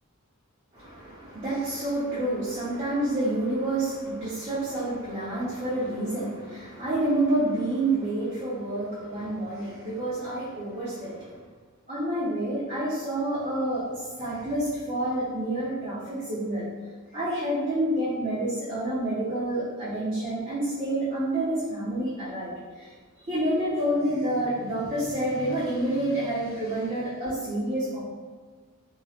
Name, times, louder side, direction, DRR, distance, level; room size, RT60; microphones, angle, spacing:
voice 1, 0.7-11.4 11.9-16.7 17.1-28.0, right 1 dB, 30° right, -10 dB, 0.7 m, -28 dB
2.9 x 2.8 x 2.4 m, 1.5 s
head